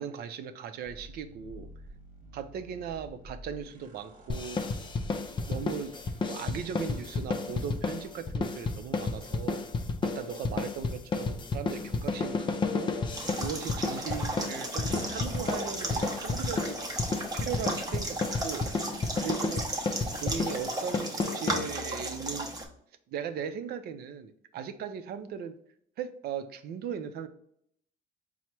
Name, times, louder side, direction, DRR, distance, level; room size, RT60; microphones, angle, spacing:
voice 1, 0.0-1.7 2.3-4.6 5.5-5.9 6.3-9.6 10.1-12.9 13.4-16.8 17.3-18.7 19.2-19.6 20.2-22.5 23.1-25.6 26.0-27.3, right 7 dB, 65° right, 9 dB, 0.5 m, -38 dB
sound 1, 0.8-7.3, equal, 50° right, 1.2 m, -50 dB
sound 2, 4.3-22.1, left 4 dB, 30° left, 0.4 m, -32 dB
sound 3, 13.1-22.6, right 2 dB, 20° right, 0.8 m, -35 dB
4.5 x 2.1 x 4.3 m, 0.69 s
cardioid pair, 110°, 17 cm